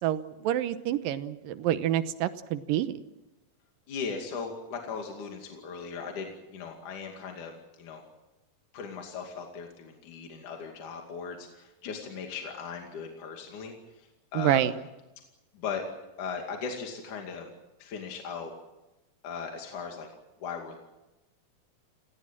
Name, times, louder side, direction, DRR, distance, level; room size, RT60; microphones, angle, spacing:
voice 1, 0.0-3.0 14.3-14.7, right 12 dB, 75° right, 12 dB, 2.5 m, -27 dB
voice 2, 3.9-8.0 8.7-14.1 14.3-14.8 15.5-15.8 16.2-17.5 17.8-18.5 19.2-20.1 20.4-20.8, left 5 dB, 55° left, 2 dB, 3.8 m, -38 dB
29.0 x 17.5 x 7.4 m, 1.0 s
omnidirectional pair, 4.3 m